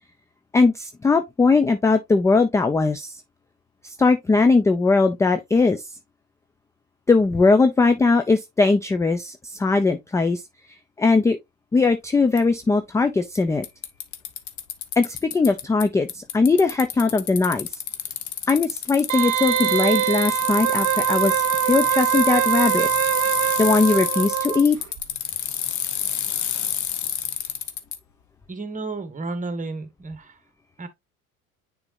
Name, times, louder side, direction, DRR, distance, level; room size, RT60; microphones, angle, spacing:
voice 1, 0.5-3.1 3.8-5.8 7.1-10.4 11.0-11.4 11.7-13.6 15.0-17.7 18.5-21.4 21.7-22.9 23.6-24.8, left 3 dB, 5° left, 0.4 m, -20 dB
Bicycle, 12.4-12.5 13.4-13.5 13.6-15.8 16.1-28.0, left 10 dB, 40° left, 1.1 m, -29 dB
Wind instrument woodwind instrument, 19.1-24.6 25.0-25.1, right 14 dB, 45° right, 0.8 m, -23 dB
voice 2, 28.5-30.3 30.8-30.9, right 3 dB, 20° right, 1.4 m, -32 dB
9.6 x 3.9 x 2.6 m
figure-of-eight pair, 70°, 43 cm